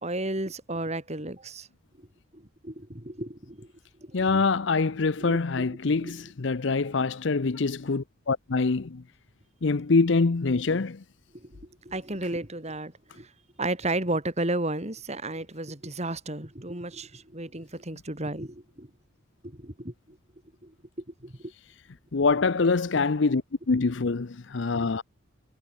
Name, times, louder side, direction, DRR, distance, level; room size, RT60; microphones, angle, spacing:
voice 1, 0.0-1.7 2.0-2.1 2.3-3.7 4.0-4.4 5.2-5.8 6.0-6.1 11.3-13.3 13.6-18.9 19.4-20.2 20.6-20.7 21.2-21.5, right 2 dB, 30° right, 3.4 m, -33 dB
voice 2, 4.1-9.0 9.6-11.0 22.1-25.0, left 4 dB, 60° left, 0.7 m, -25 dB
head